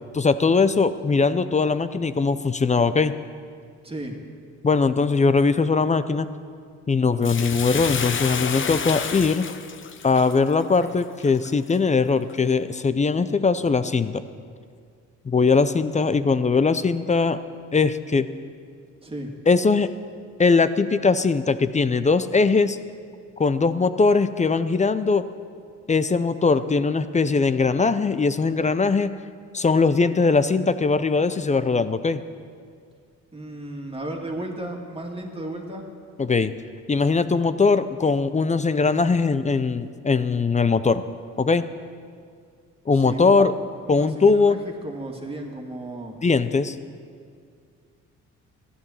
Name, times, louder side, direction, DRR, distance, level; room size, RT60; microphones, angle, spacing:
voice 1, 0.1-3.1 4.6-6.3 6.9-9.5 10.0-14.2 15.2-17.4 17.7-18.3 19.5-19.9 20.4-22.8 23.4-25.2 25.9-29.1 29.5-32.2 36.2-36.5 36.9-41.0 41.4-41.6 42.9-43.5 43.9-44.6 46.2-46.8, left 4 dB, 25° left, 12 dB, 0.6 m, -20 dB
voice 2, 3.8-4.2 19.0-19.3 33.3-35.9 42.9-43.5 43.9-46.2, right 1 dB, 20° right, 1 dB, 2.3 m, -34 dB
Bathtub (filling or washing), 7.2-11.8 12.3-12.4, left 6 dB, 40° left, 0.9 m, -30 dB
14.0 x 10.0 x 7.3 m, 2.2 s
cardioid pair, 90°, 30 cm